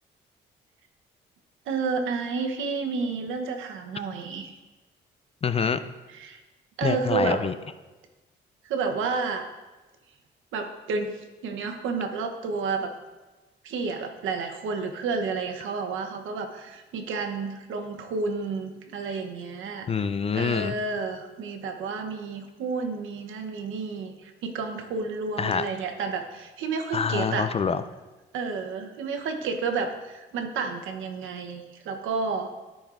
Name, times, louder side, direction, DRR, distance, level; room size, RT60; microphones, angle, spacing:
voice 1, 1.7-4.5 6.2-6.4 6.8-7.4 8.7-9.5 10.5-11.2 11.4-12.9 13.6-19.9 20.3-27.5 28.3-32.5, right 4 dB, 80° right, 4 dB, 0.9 m, -30 dB
voice 2, 5.4-5.8 6.8-7.5 19.9-20.8 25.4-25.6 26.9-27.8, left 6 dB, 30° left, 11 dB, 0.4 m, -25 dB
13.0 x 5.3 x 2.5 m, 1.2 s
cardioid pair, 90°, 20 cm